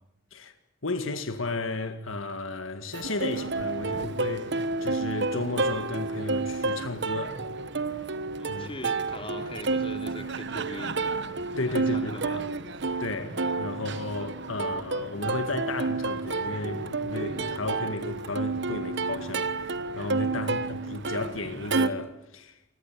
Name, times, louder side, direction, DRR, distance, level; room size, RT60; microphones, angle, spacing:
voice 1, 0.8-7.4 8.5-8.7 11.6-12.4 13.0-22.6, left 2 dB, 85° left, 2.0 m, -34 dB
Plucked string instrument, 2.9-21.9, right 3 dB, 60° right, 1.2 m, -30 dB
voice 2, 8.4-11.0 11.5-12.5 20.3-20.6, left 1 dB, 30° left, 3.6 m, -41 dB
28.0 x 20.5 x 9.3 m
head